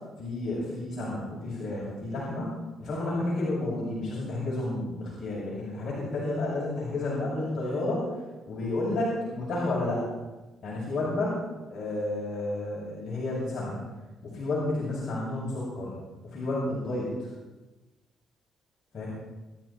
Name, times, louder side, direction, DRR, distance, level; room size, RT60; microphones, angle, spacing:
voice 1, 0.2-8.1 8.5-10.0 10.6-13.8 14.2-15.9 16.2-17.3 18.9-19.1, left 2 dB, 55° left, -7 dB, 7.7 m, -31 dB
27.5 x 11.5 x 4.6 m, 1.1 s
cardioid pair, 90°, 0 cm